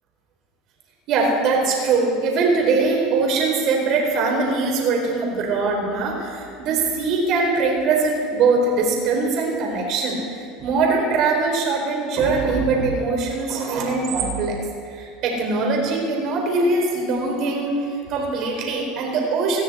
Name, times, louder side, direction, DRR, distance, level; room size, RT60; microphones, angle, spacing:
voice 1, 1.1-10.2 10.6-14.6 14.9-19.6, right 3 dB, 55° right, 0 dB, 4.1 m, -22 dB
19.0 x 13.5 x 4.3 m, 2.3 s
supercardioid pair, 105°, 0 cm